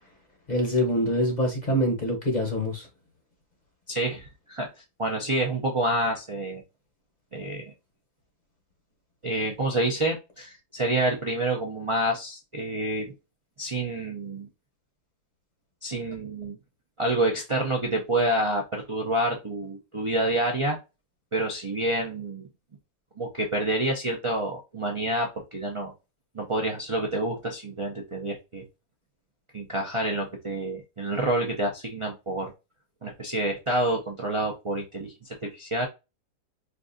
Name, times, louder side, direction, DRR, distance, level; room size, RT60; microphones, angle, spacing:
voice 1, 0.5-2.9, equal, 35° left, 0.8 m, -25 dB
voice 2, 3.9-6.6 7.3-7.7 9.2-13.1 13.6-14.5 15.8-16.6 17.0-20.8 21.3-22.5 23.2-25.9 26.3-28.6 29.5-32.5 33.0-35.9, right 1 dB, 45° right, 0.4 m, -28 dB
4.5 x 2.4 x 2.6 m
omnidirectional pair, 1.7 m